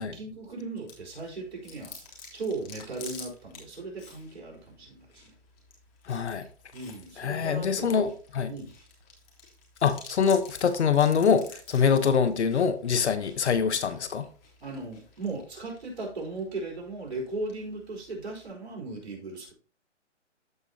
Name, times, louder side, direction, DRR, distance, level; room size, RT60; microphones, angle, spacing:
voice 1, 0.0-2.0 2.3-5.3 6.7-8.0 8.5-8.7 14.6-19.5, right 3 dB, 55° right, 4.1 m, -37 dB
Chewing mastication, 0.9-18.5, left 4 dB, 50° left, 3.4 m, -51 dB
voice 2, 6.1-6.5 7.2-8.5 9.8-14.2, left 6 dB, 65° left, 1.1 m, -24 dB
14.0 x 4.9 x 2.8 m
hypercardioid pair, 150°, 36 cm